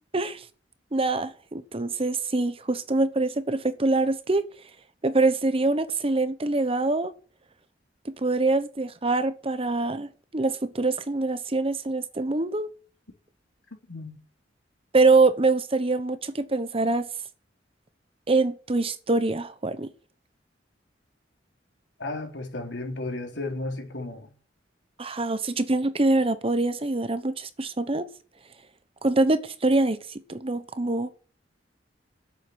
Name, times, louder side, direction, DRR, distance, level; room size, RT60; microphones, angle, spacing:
voice 1, 0.9-4.4 5.0-7.1 8.0-12.7 14.9-17.1 18.3-19.9 25.0-28.0 29.0-30.0 30.3-31.1, right 3 dB, 30° right, 1.0 m, -24 dB
voice 2, 13.9-14.2 22.0-24.3, left 2 dB, 75° left, 3.9 m, -34 dB
10.5 x 8.2 x 8.9 m
head